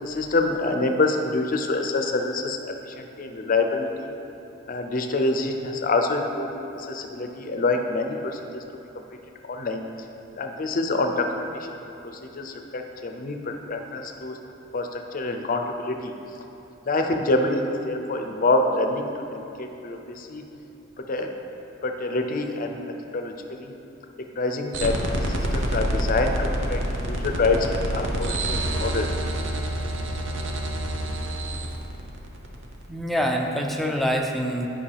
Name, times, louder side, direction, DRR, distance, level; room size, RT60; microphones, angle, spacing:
voice 1, 0.0-2.6 2.9-4.1 4.7-6.5 6.7-8.6 9.4-9.8 10.4-14.4 14.7-16.1 16.9-20.4 21.1-21.3 21.8-22.8 23.1-23.7 24.3-26.8 27.1-29.1, left 2 dB, 45° left, 4 dB, 0.6 m, -26 dB
sound 1, 24.7-32.9, right 1 dB, 65° right, 0.8 m, -27 dB
voice 2, 32.9-34.7, equal, ahead, 1 dB, 0.5 m, -25 dB
9.9 x 5.3 x 3.4 m, 3.0 s
head